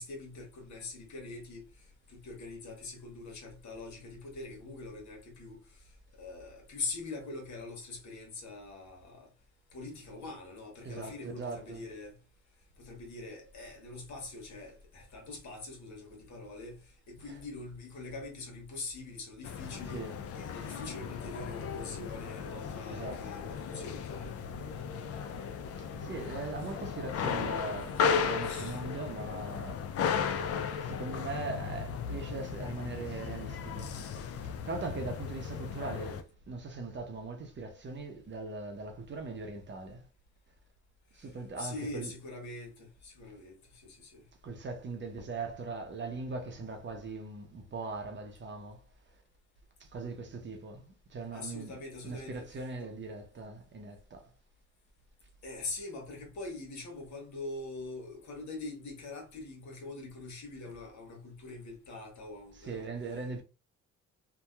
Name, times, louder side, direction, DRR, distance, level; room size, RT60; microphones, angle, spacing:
voice 1, 0.0-1.6 2.1-5.6 6.2-9.3 9.7-12.1 12.8-20.1 20.3-24.4 28.4-28.8 41.6-44.2 51.3-52.5 52.8-52.9 55.4-62.9, left 3 dB, 70° left, 1.2 m, -43 dB
voice 2, 10.8-11.8 17.3-17.4 19.8-20.2 22.9-23.3 25.7-40.1 41.1-42.1 44.4-48.9 49.8-54.3 62.5-63.4, right 3 dB, 40° right, 0.7 m, -40 dB
sound 1, 19.4-36.2, left 6 dB, 50° left, 0.4 m, -35 dB
2.8 x 2.2 x 2.2 m
cardioid pair, 90°, 30 cm